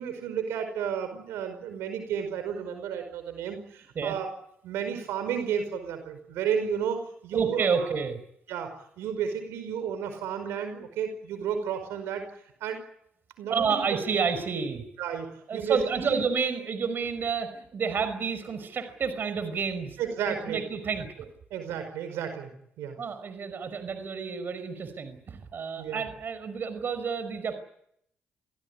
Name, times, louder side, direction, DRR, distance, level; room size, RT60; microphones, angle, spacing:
voice 1, 0.0-4.3 4.6-7.9 8.5-8.7 9.0-12.2 12.6-12.8 13.4-13.8 15.0-16.2 20.0-20.6 21.5-22.5 22.8-23.0 25.8-26.0, right 7 dB, 85° right, 8 dB, 5.1 m, -32 dB
voice 2, 7.3-8.2 13.5-14.8 15.5-20.0 20.3-21.3 23.0-27.6, right 5 dB, 55° right, 11 dB, 5.4 m, -30 dB
27.0 x 17.0 x 9.8 m, 0.72 s
supercardioid pair, 70°, 4 cm